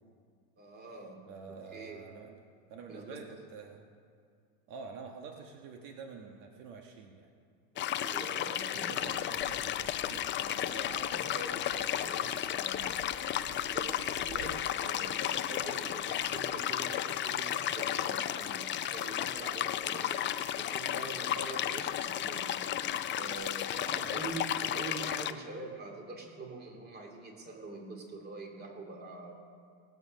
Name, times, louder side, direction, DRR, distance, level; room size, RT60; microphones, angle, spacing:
voice 1, 0.6-1.2 1.5-2.0 2.9-3.3 7.7-9.1 10.4-13.1 13.7-20.3 20.6-22.5 23.2-29.4, right 2 dB, 25° right, 1 dB, 2.6 m, -45 dB
voice 2, 1.3-2.4 2.7-3.9 4.7-7.3 8.8-10.3 23.9-24.1, right 5 dB, 65° right, 3 dB, 1.5 m, -47 dB
sound 1, 7.8-25.3, left 11 dB, 30° left, 0.5 m, -33 dB
Fixed-wing aircraft airplane, 9.0-14.5, right 3 dB, 50° right, 2.6 m, -55 dB
18.5 x 8.1 x 5.3 m, 2.3 s
supercardioid pair, 105°, 40 cm